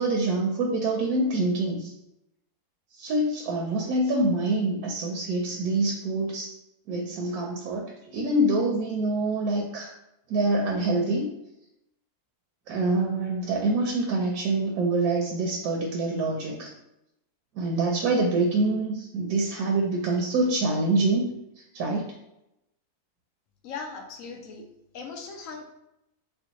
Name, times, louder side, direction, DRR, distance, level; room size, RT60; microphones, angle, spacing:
voice 1, 0.0-1.9 3.0-6.5 6.9-9.9 10.3-11.3 12.7-16.7 17.6-21.3 21.7-22.1, right 2 dB, 75° right, -1 dB, 1.0 m, -25 dB
voice 2, 23.6-24.6 24.9-25.6, left 4 dB, 65° left, 3 dB, 0.9 m, -38 dB
4.4 x 2.2 x 2.8 m, 0.85 s
omnidirectional pair, 1.7 m